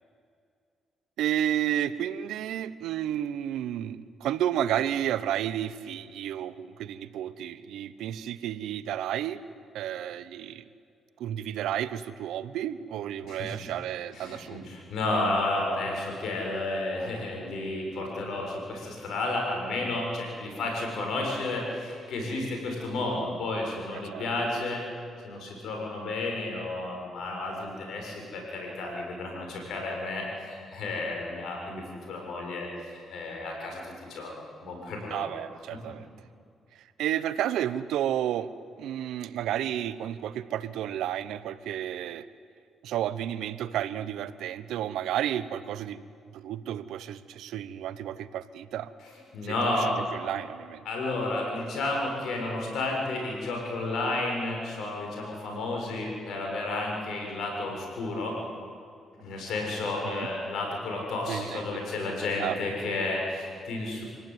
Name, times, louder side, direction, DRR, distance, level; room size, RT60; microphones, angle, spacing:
voice 1, 1.2-9.4 9.7-10.7 11.2-14.7 24.1-24.3 35.1-36.1 36.7-38.5 38.8-42.3 42.8-46.1 46.3-48.9 49.4-49.9 50.1-50.8 60.0-60.3 61.3-61.8 62.4-62.6, right 11 dB, 80° right, 15 dB, 0.9 m, -32 dB
voice 2, 13.2-13.6 14.1-24.8 25.2-35.3 35.7-35.9 49.3-50.0 50.9-58.4 59.1-64.0, left 2 dB, 75° left, 1 dB, 7.0 m, -32 dB
26.0 x 17.5 x 9.4 m, 2.3 s
supercardioid pair, 60°, 0 cm